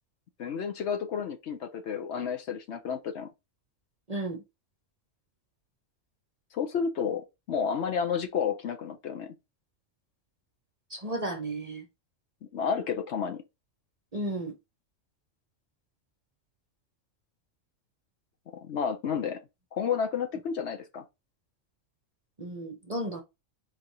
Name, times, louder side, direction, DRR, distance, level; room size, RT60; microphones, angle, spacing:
voice 1, 0.4-3.3 6.5-9.3 12.5-13.4 18.5-19.4 19.7-21.0, left 7 dB, 60° left, 0.9 m, -31 dB
voice 2, 4.1-4.4 10.9-11.8 14.1-14.5 22.4-23.2, right 1 dB, 35° right, 0.7 m, -33 dB
4.0 x 3.2 x 4.0 m
omnidirectional pair, 1.4 m